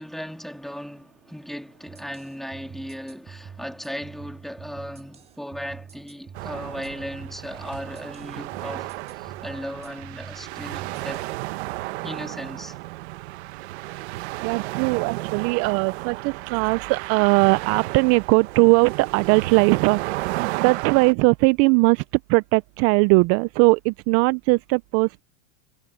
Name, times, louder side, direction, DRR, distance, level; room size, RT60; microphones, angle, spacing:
voice 1, 0.0-11.3 12.0-12.8, equal, ahead, 3.0 m, -36 dB
sound 1, 1.9-11.4, right 6 dB, 20° right, 2.0 m, -45 dB
sound 2, 6.3-21.1, right 20 dB, 70° right, 1.5 m, -33 dB
voice 2, 14.4-20.0 20.3-25.2, right 27 dB, 45° right, 0.5 m, -20 dB
supercardioid pair, 125°, 34 cm